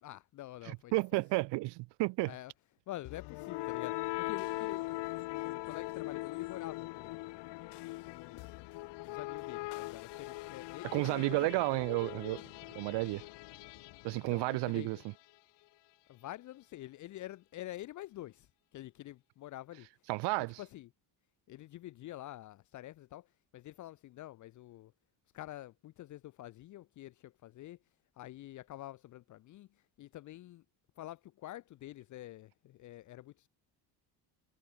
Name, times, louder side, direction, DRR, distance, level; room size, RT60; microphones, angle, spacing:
voice 1, 0.0-1.2 2.2-2.5 2.9-7.3 8.0-8.7 9.0-11.6 14.1-15.0 16.1-19.9 20.6-20.9 21.5-23.3 23.5-24.9 25.3-27.8 28.2-29.7 30.0-30.6 31.0-33.5, left 15 dB, 45° left, 0.7 m, -47 dB
voice 2, 0.7-2.3 10.9-12.4 12.7-13.2 14.0-15.0 20.1-20.6, right 23 dB, 80° right, 0.8 m, -32 dB
sound 1, 3.0-14.9, left 21 dB, 80° left, 1.4 m, -41 dB
cardioid pair, 165°, 42 cm